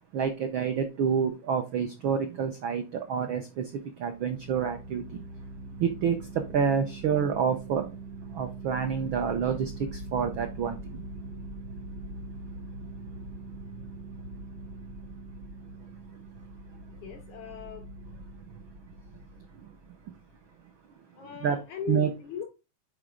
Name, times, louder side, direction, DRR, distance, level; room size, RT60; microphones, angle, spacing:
voice 1, 0.1-3.7 4.0-5.2 5.8-7.9 8.3-11.0 21.4-21.6 21.9-22.1, right 7 dB, 80° right, 6 dB, 1.1 m, -28 dB
sound 1, 4.1-20.3, right 2 dB, 50° right, 2.3 m, -43 dB
voice 2, 16.9-17.8 21.1-22.4, left 8 dB, 85° left, 1 dB, 4.2 m, -38 dB
9.2 x 4.0 x 3.7 m, 0.27 s
omnidirectional pair, 3.3 m